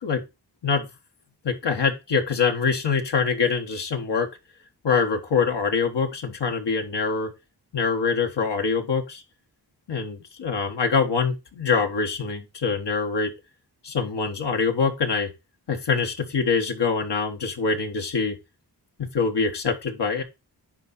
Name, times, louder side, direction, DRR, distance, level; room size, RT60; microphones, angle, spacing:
voice 1, 1.4-4.3 4.8-7.3 7.7-9.2 9.9-13.3 13.8-15.3 15.7-18.4 19.0-20.2, left 5 dB, 90° left, 3 dB, 1.5 m, -24 dB
10.5 x 3.8 x 4.2 m, 0.25 s
cardioid pair, 50°, 41 cm